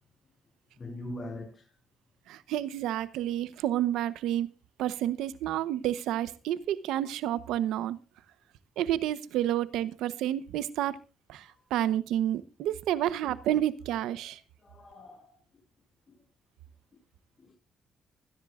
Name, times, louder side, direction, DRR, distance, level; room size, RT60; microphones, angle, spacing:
voice 1, 0.8-1.7 11.4-11.6 14.2-14.3 14.6-15.4 17.4-17.5, left 1 dB, 35° left, 7.1 m, -42 dB
voice 2, 2.3-4.5 4.8-8.0 8.8-11.0 11.3-14.4, right 12 dB, 90° right, 0.9 m, -30 dB
25.5 x 10.5 x 2.5 m
cardioid pair, 90°, 0 cm